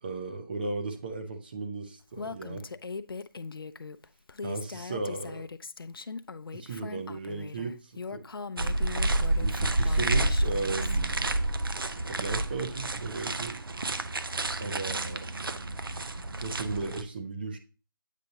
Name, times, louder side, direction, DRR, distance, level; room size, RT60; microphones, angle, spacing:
voice 1, 0.0-2.6 4.4-5.5 6.5-8.3 9.4-11.3 12.1-13.6 14.6-15.3 16.4-17.6, right 3 dB, 25° right, 0.6 m, -36 dB
Female speech woman speaking, 2.2-11.0, left 4 dB, 85° left, 0.5 m, -40 dB
sound 1, 8.6-17.0, right 2 dB, 75° right, 0.7 m, -29 dB
8.2 x 5.1 x 2.8 m
figure-of-eight pair, 165°, 12 cm